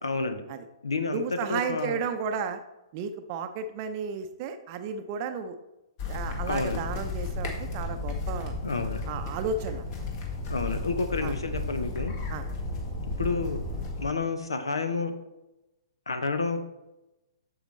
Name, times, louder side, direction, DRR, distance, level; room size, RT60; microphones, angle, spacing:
voice 1, 0.0-0.4 0.8-2.0 6.5-6.9 8.6-9.0 10.5-12.1 13.2-13.6 14.0-15.1 16.1-16.6, left 3 dB, 80° left, 8 dB, 0.8 m, -29 dB
voice 2, 1.1-2.6 2.9-5.6 6.1-8.5 9.1-10.1 11.2-11.3 12.3-12.4, right 5 dB, 40° right, 8 dB, 0.6 m, -33 dB
sound 1, 6.0-14.1, left 3 dB, 45° left, 1.8 m, -33 dB
8.1 x 7.2 x 3.2 m, 0.96 s
figure-of-eight pair, 115°, 3 cm